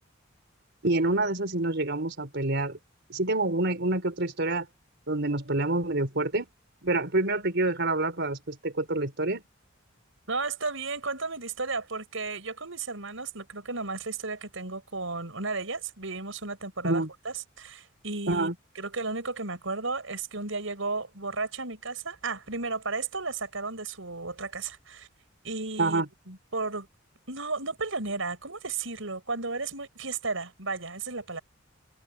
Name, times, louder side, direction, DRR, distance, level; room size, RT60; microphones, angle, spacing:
voice 1, 0.8-2.8 3.1-4.7 5.1-6.5 6.8-9.4 16.8-17.1 18.3-18.5 25.8-26.1, right 2 dB, 60° right, 4.2 m, -27 dB
voice 2, 10.3-18.5 18.7-25.1 25.4-26.9 27.3-31.4, right 3 dB, 80° right, 6.2 m, -34 dB
head